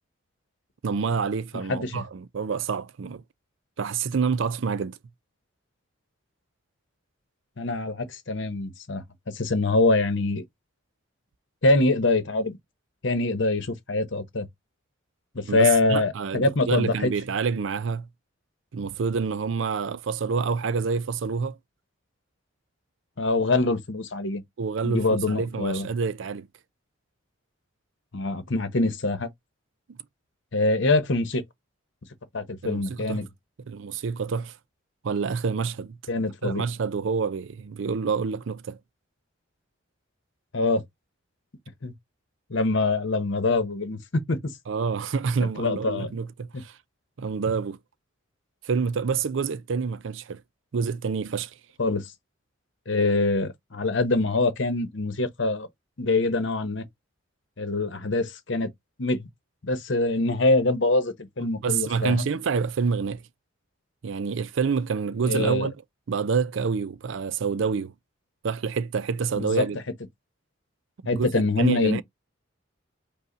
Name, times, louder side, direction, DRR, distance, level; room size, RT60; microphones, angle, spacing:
voice 1, 0.8-3.2 3.8-5.0 15.4-18.1 18.7-21.6 24.6-26.5 29.9-30.0 32.6-33.2 33.7-34.5 35.0-36.0 36.4-38.8 44.7-46.8 47.2-47.8 48.6-50.4 50.7-51.5 61.6-63.2 64.0-65.8 66.1-67.9 68.4-69.8 71.0-71.3 71.6-72.0, right 5 dB, 65° right, 0.4 m, -27 dB
voice 2, 1.7-2.0 7.6-10.4 11.6-12.6 13.0-14.5 15.3-17.1 23.2-24.4 24.8-25.9 28.1-29.3 30.5-31.4 32.3-33.3 36.1-36.6 40.5-40.8 41.8-41.9 42.5-44.4 45.6-46.1 51.8-52.1 52.9-55.7 56.0-56.9 57.6-58.7 59.0-59.3 59.6-62.3 65.2-65.7 69.4-69.6 71.1-72.0, left 2 dB, 60° left, 1.0 m, -24 dB
5.5 x 2.3 x 3.9 m
head